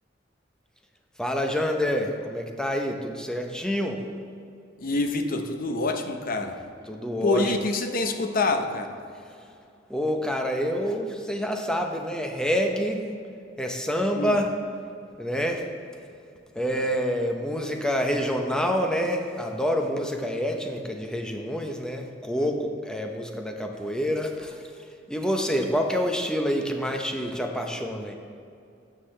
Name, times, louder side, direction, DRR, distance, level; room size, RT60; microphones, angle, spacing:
voice 1, 1.2-4.0 6.9-7.6 9.4-9.5 9.9-13.1 13.6-14.5 15.2-15.7 16.5-28.1, equal, 5° left, 2 dB, 0.8 m, -27 dB
voice 2, 4.8-6.6 7.2-9.0 14.2-14.4, left 2 dB, 50° left, 6 dB, 0.7 m, -26 dB
13.0 x 7.5 x 3.3 m, 2.5 s
head